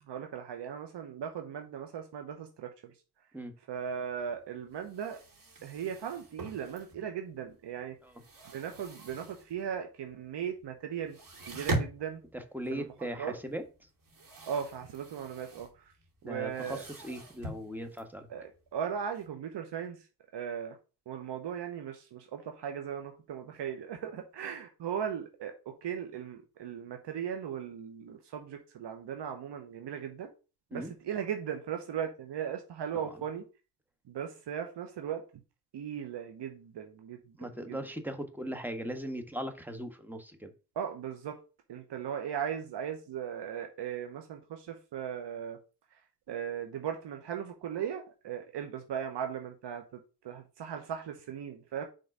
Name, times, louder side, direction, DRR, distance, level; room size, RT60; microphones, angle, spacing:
voice 1, 0.1-2.7 3.7-5.2 5.6-8.0 8.5-11.2 11.5-12.2 12.7-12.9 13.2-13.4 14.5-15.7 16.2-16.8 18.3-20.0 20.3-20.8 21.1-30.3 30.7-33.5 34.1-35.2 35.7-37.8 40.8-41.4 41.7-45.6 46.3-49.8 50.2-51.8, right 8 dB, 85° right, 1.0 m, -38 dB
sound 1, 4.0-4.1 4.4-4.5 4.7-7.3 7.7-9.8 10.1-10.2 10.5-10.7 11.0-19.2, right 2 dB, 50° right, 2.6 m, -41 dB
voice 2, 12.3-13.6 16.2-18.3 30.7-30.9 37.4-40.5, equal, 5° right, 1.4 m, -39 dB
5.3 x 3.8 x 5.4 m
cardioid pair, 50°, 41 cm